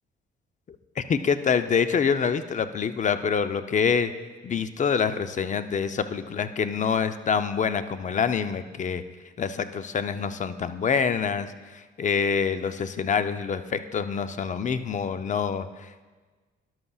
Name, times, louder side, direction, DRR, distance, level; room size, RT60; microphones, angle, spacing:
voice 1, 1.0-4.1 4.4-9.0 9.4-16.0, left 6 dB, 40° left, 10 dB, 0.6 m, -26 dB
13.5 x 11.0 x 2.4 m, 1.3 s
cardioid pair, 90°, 20 cm